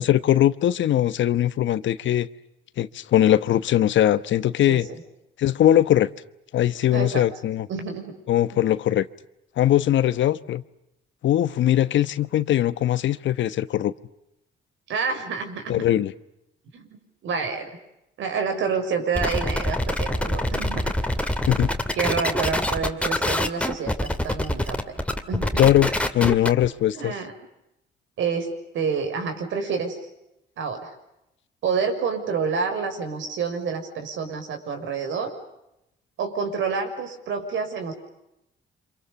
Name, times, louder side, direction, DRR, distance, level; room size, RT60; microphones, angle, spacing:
voice 1, 0.0-2.3 2.8-4.9 5.4-6.1 6.5-7.7 8.3-9.1 9.6-10.6 11.2-13.9 15.7-16.1 21.5-21.7 25.6-27.1, left 12 dB, 70° left, 15 dB, 1.1 m, -20 dB
voice 2, 4.7-5.0 6.9-7.2 7.7-8.1 8.5-8.6 14.9-15.8 16.7-16.9 17.2-17.7 18.2-20.9 22.0-25.0 25.3-25.7 26.9-27.3 28.2-30.0 30.6-30.9 31.6-35.3 36.2-37.9, right 5 dB, 75° right, 5 dB, 6.6 m, -28 dB
sound 1, 19.2-26.7, left 1 dB, 5° left, 2.6 m, -25 dB
29.5 x 26.5 x 7.1 m, 0.86 s
cardioid pair, 90°, 20 cm